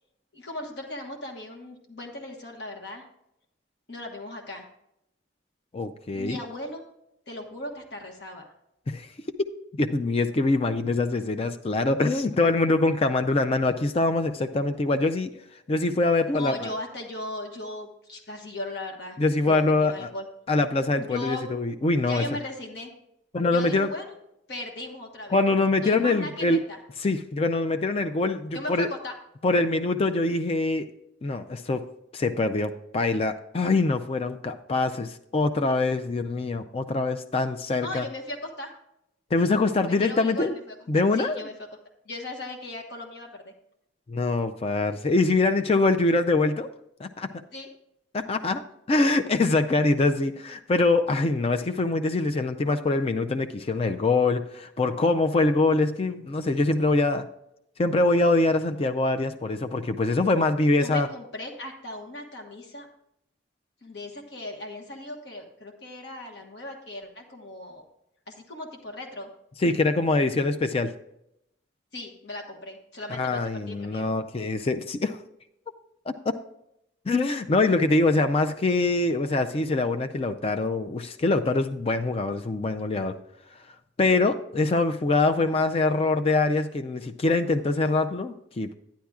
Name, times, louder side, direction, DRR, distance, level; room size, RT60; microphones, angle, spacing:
voice 1, 0.3-3.0 3.9-4.7 6.1-6.8 7.3-8.4 16.3-19.2 19.5-20.2 21.0-21.5 22.0-22.9 23.5-24.2 24.5-25.4 25.8-26.8 28.5-29.2 37.7-38.7 39.8-41.5 42.0-43.5 47.5-47.7 60.8-62.9 63.8-67.8 68.3-69.3 71.9-74.1, left 1 dB, 60° left, 1 dB, 1.3 m, -37 dB
voice 2, 5.7-6.4 8.9-9.1 9.8-15.3 15.7-16.7 19.2-20.1 20.5-22.2 23.3-23.9 25.3-26.6 27.0-28.9 29.4-30.9 31.2-31.8 32.1-38.1 39.3-40.5 40.9-41.4 44.1-46.7 47.0-47.3 48.1-48.6 48.9-57.3 57.8-61.1 69.6-70.9 73.1-75.2 76.1-76.3 77.1-83.2 84.0-88.7, left 2 dB, 30° left, 8 dB, 0.4 m, -24 dB
11.5 x 10.5 x 2.4 m, 0.79 s
head